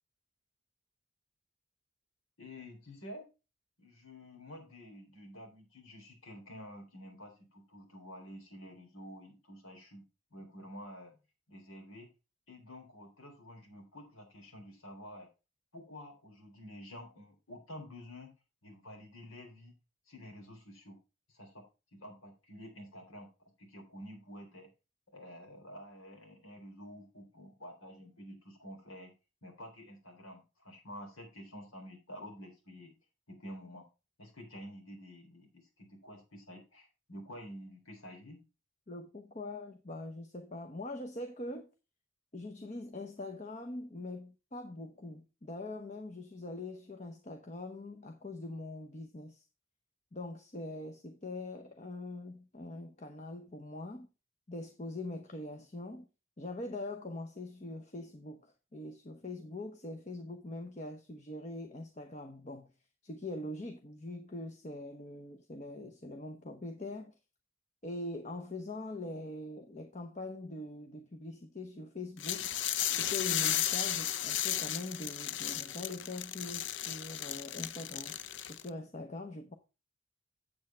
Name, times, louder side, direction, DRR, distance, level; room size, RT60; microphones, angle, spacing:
voice 1, 2.4-3.3 3.8-10.0 10.3-11.2 11.5-12.1 12.5-15.3 15.7-18.3 18.6-19.7 20.1-21.0 21.3-21.7 21.9-23.3 23.6-24.7 25.1-29.1 29.4-32.9 33.3-33.9 34.2-38.4, equal, 90° left, 3.5 m, -49 dB
voice 2, 38.9-41.7 42.3-49.4 50.1-54.1 54.5-56.1 56.4-62.7 63.0-67.2 67.8-72.5 72.9-78.2 78.5-79.5, left 2 dB, 35° left, 0.9 m, -43 dB
sound 1, 72.2-78.7, left 11 dB, 60° left, 0.5 m, -34 dB
8.2 x 7.8 x 4.4 m
head